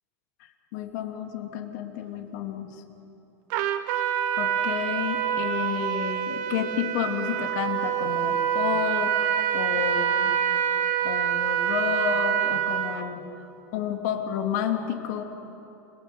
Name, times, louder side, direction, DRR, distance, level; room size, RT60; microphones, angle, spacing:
voice 1, 0.7-2.7 4.4-9.2 9.5-10.3 11.0-13.2 13.7-15.2, left 9 dB, 75° left, 4 dB, 3.2 m, -30 dB
Trumpet, 3.5-13.1, right 10 dB, 65° right, 1.8 m, -26 dB
29.5 x 20.5 x 9.5 m, 2.9 s
supercardioid pair, 135°, 9 cm